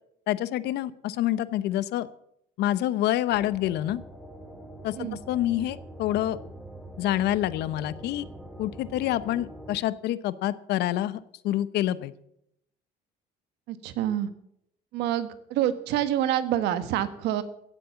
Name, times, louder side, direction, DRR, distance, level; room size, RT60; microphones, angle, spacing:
voice 1, 0.3-2.1 2.6-4.0 4.8-6.4 7.0-8.3 8.6-11.2 11.4-12.1, left 13 dB, 80° left, 16 dB, 0.8 m, -27 dB
sound 1, 3.3-9.8, right 1 dB, ahead, 1.8 m, -44 dB
voice 2, 13.7-14.3 14.9-17.4, right 11 dB, 90° right, 12 dB, 1.3 m, -27 dB
16.5 x 7.7 x 7.0 m, 0.76 s
cardioid pair, 110°, 17 cm